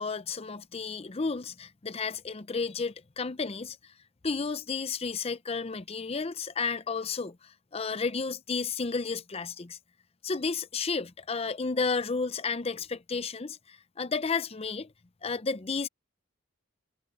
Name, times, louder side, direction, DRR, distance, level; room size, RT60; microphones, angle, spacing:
voice 1, 0.0-3.8 4.2-9.8 10.2-14.9 15.2-15.9, left 4 dB, 30° left, 0.6 m, -32 dB
head